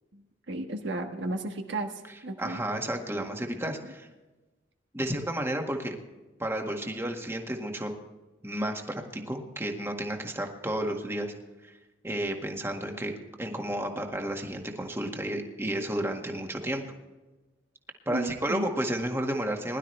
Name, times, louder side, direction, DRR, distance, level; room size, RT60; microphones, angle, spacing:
voice 1, 0.5-1.9 2.2-2.6 18.1-18.7, right 2 dB, 70° right, 3 dB, 1.5 m, -33 dB
voice 2, 2.4-4.1 4.9-6.0 6.4-7.9 8.4-11.3 11.6-11.7 12.0-13.1 13.4-16.8 18.0-19.8, right 1 dB, 15° right, 2 dB, 1.7 m, -32 dB
21.0 x 12.0 x 3.3 m, 1.1 s
head